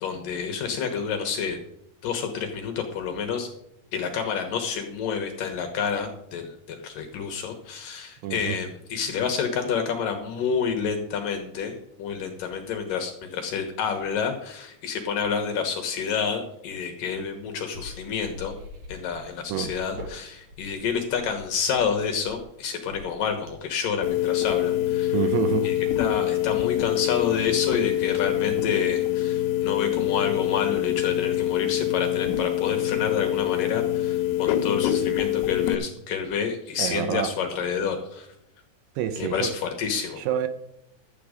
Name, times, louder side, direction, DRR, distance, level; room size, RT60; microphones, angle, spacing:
voice 1, 0.0-1.6 2.0-3.5 3.9-18.5 18.9-25.1 25.6-38.3 39.2-40.2, left 6 dB, 65° left, 4 dB, 2.4 m, -29 dB
voice 2, 8.2-8.6 19.5-19.7 25.1-25.7 36.8-37.3 39.0-39.5 40.2-40.5, right 10 dB, 80° right, 10 dB, 2.7 m, -27 dB
sound 1, 17.7-23.8, left 1 dB, 50° right, 2.7 m, -43 dB
sound 2, 24.0-35.8, left 13 dB, 85° left, 2.9 m, -25 dB
12.5 x 8.5 x 5.1 m, 0.80 s
omnidirectional pair, 5.0 m